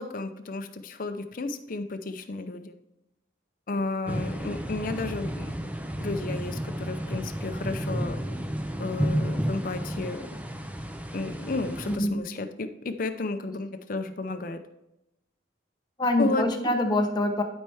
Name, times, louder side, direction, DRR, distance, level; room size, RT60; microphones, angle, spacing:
voice 1, 0.0-2.7 3.7-5.5 6.0-8.2 8.8-10.3 11.1-14.6 16.2-16.5, left 3 dB, 45° left, 7 dB, 0.6 m, -32 dB
sound 1, 4.1-12.0, equal, 10° right, 0.5 m, -32 dB
voice 2, 11.9-12.2 16.0-17.4, left 1 dB, 20° left, 2 dB, 0.9 m, -25 dB
12.0 x 4.4 x 3.5 m, 0.88 s
head